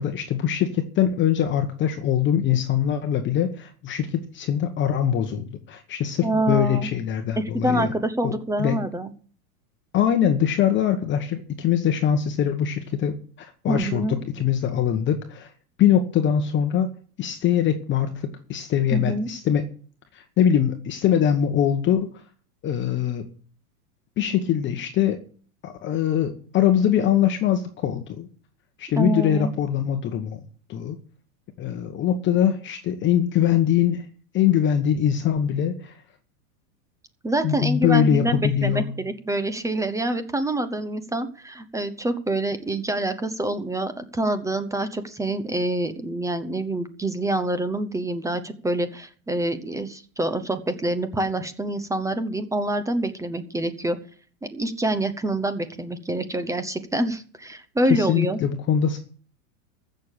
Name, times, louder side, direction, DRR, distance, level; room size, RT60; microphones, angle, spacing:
voice 1, 0.0-7.9 8.2-8.3 8.6-8.8 9.9-15.5 15.8-16.9 17.2-19.7 20.1-22.1 22.6-23.2 24.2-25.2 25.6-28.3 28.8-30.4 30.7-31.0 31.6-34.1 34.3-36.0 37.4-38.9 57.9-59.0, left 9 dB, 25° left, 6 dB, 1.2 m, -22 dB
voice 2, 6.2-6.9 7.4-9.1 13.7-14.2 18.9-19.3 29.0-29.5 37.2-54.0 54.5-58.4, right 1 dB, 5° right, 11 dB, 0.8 m, -26 dB
15.0 x 6.7 x 6.6 m, 0.43 s
supercardioid pair, 135°, 42 cm